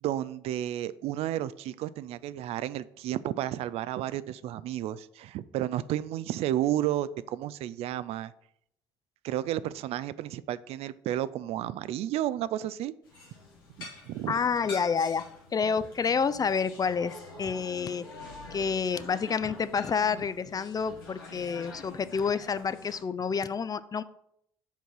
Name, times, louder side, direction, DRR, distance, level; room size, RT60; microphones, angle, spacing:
voice 1, 0.0-8.3 9.2-12.9 13.8-14.4, right 12 dB, 60° right, 17 dB, 0.4 m, -32 dB
sound 1, 13.0-23.0, left 3 dB, 85° left, 1.4 m, -46 dB
voice 2, 14.3-15.3 15.5-18.0 18.5-24.0, left 6 dB, 30° left, 15 dB, 0.5 m, -29 dB
7.2 x 3.8 x 6.1 m, 0.74 s
hypercardioid pair, 50°, 12 cm